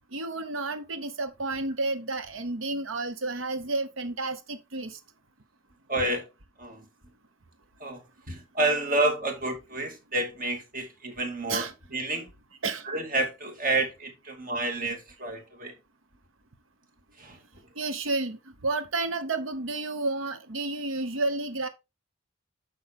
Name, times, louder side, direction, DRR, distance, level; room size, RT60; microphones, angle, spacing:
voice 1, 0.1-5.0 11.5-11.7 12.6-12.9 17.8-21.7, right 3 dB, 85° right, 1.0 m, -31 dB
voice 2, 5.9-6.3 6.6-6.8 7.8-8.0 8.3-12.3 12.9-15.7 17.2-17.4, right 2 dB, 45° right, 2.2 m, -29 dB
8.0 x 5.7 x 3.6 m
head